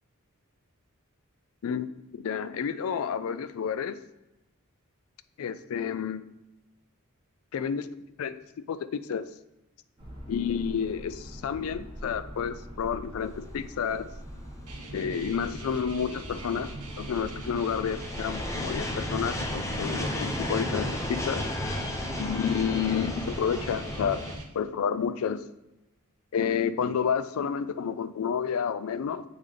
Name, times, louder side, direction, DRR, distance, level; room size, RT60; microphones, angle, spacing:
voice 1, 1.6-4.0 5.4-6.2 7.5-7.9 8.2-8.4 8.7-9.3 10.3-14.1 14.9-21.5 22.2-24.2 24.5-25.4 26.3-29.2, left 7 dB, 65° left, 13 dB, 0.3 m, -30 dB
sound 1, 10.0-22.7, equal, 20° right, 1.3 m, -43 dB
sound 2, 13.4-24.4, left 1 dB, 15° left, 0.5 m, -34 dB
sound 3, 14.7-24.4, right 3 dB, 80° right, 0.9 m, -44 dB
7.9 x 3.7 x 3.4 m, 0.96 s
head